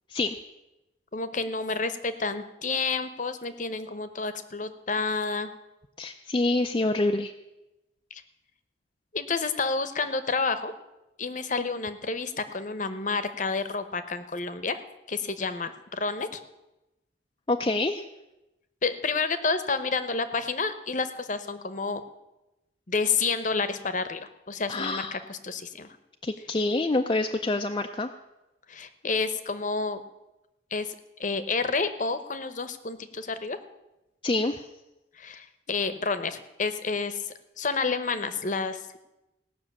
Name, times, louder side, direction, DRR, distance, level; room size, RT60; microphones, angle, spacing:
voice 1, 1.1-5.5 8.1-8.2 9.1-10.7 11.2-14.8 15.1-16.4 18.8-22.0 22.9-24.2 24.5-25.9 28.7-30.0 30.7-30.9 31.2-33.6 35.2-37.2 37.6-39.0, left 4 dB, 40° left, 11 dB, 0.9 m, -29 dB
voice 2, 6.0-7.3 17.5-18.0 24.7-25.2 26.2-28.1 34.2-34.7, left 2 dB, 25° left, 3 dB, 0.5 m, -26 dB
17.5 x 6.2 x 8.5 m, 0.97 s
head